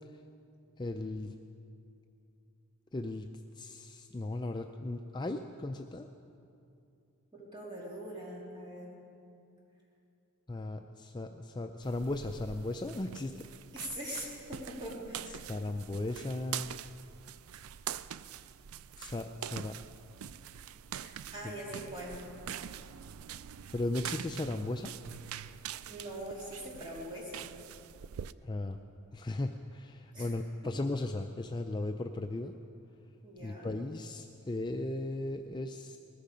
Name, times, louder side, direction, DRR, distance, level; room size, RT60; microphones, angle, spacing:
voice 1, 0.8-1.4 2.9-3.3 3.6-6.1 10.5-13.3 15.5-16.8 19.0-19.8 23.7-24.9 28.4-28.8 29.1-32.5 33.4-36.0, left 2 dB, 20° left, 5 dB, 0.4 m, -36 dB
voice 2, 7.3-9.0 13.7-15.5 20.9-22.2 25.9-27.5 30.1-30.3 33.2-33.7, equal, 20° right, -5 dB, 3.6 m, -42 dB
sound 1, 11.8-28.3, right 9 dB, 75° right, 0.4 m, -44 dB
19.5 x 14.0 x 5.1 m, 2.6 s
head